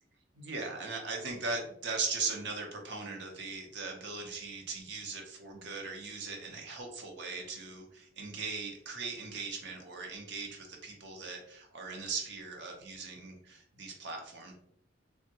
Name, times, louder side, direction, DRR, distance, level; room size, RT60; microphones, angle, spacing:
voice 1, 0.3-14.5, right 4 dB, 65° right, 2 dB, 0.7 m, -39 dB
3.4 x 2.1 x 2.8 m, 0.71 s
head